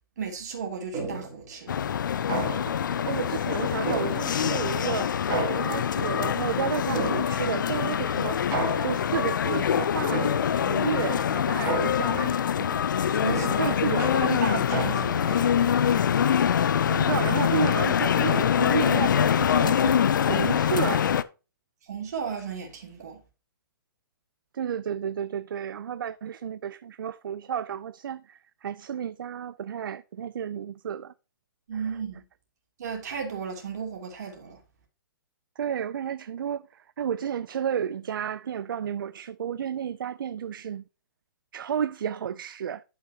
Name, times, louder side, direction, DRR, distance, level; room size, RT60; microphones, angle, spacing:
voice 1, 0.2-1.7 13.2-16.0 21.9-23.2 31.7-32.2 32.8-34.6, right 6 dB, 45° right, 2.8 m, -34 dB
sound 1, 0.9-1.5 2.3-3.0 3.9-4.6 5.3-6.1 6.9-7.7 8.5-9.2 10.1-10.8 11.7-12.4 13.3-15.3, right 4 dB, 20° right, 2.2 m, -33 dB
sound 2, 1.7-21.2, left 8 dB, 60° left, 0.5 m, -24 dB
voice 2, 2.6-5.1 5.5-8.4 8.8-10.3 10.7-12.7 13.6-14.1 16.9-21.1 24.5-31.1 31.7-31.8 35.6-40.8 41.5-42.8, right 8 dB, 65° right, 0.4 m, -32 dB
11.5 x 5.7 x 2.8 m
hypercardioid pair, 180°, 12 cm